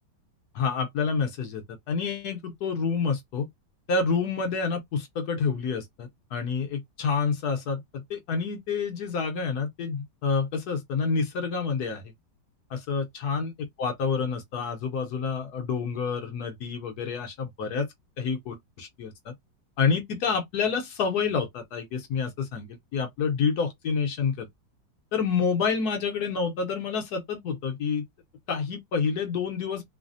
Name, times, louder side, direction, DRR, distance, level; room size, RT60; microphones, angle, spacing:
voice 1, 0.5-3.5 3.9-12.1 12.7-13.5 13.8-17.9 18.2-19.3 19.8-24.5 25.1-28.0 28.5-29.8, left 5 dB, 70° left, 1.1 m, -28 dB
3.2 x 2.0 x 2.5 m
omnidirectional pair, 2.0 m